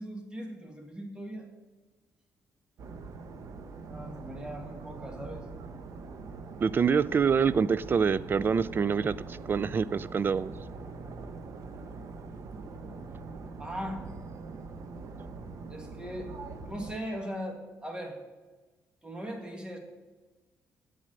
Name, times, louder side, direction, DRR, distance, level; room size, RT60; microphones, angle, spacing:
voice 1, 0.0-1.5 3.9-5.4 13.6-14.0 15.7-16.3 16.7-18.2 19.0-19.8, equal, 15° right, 2 dB, 2.0 m, -39 dB
sound 1, 2.8-17.0, right 4 dB, 65° right, 0.8 m, -43 dB
voice 2, 6.6-10.5, right 6 dB, 35° right, 18 dB, 0.3 m, -26 dB
8.1 x 7.4 x 7.8 m, 1.3 s
cardioid pair, 115°, 6 cm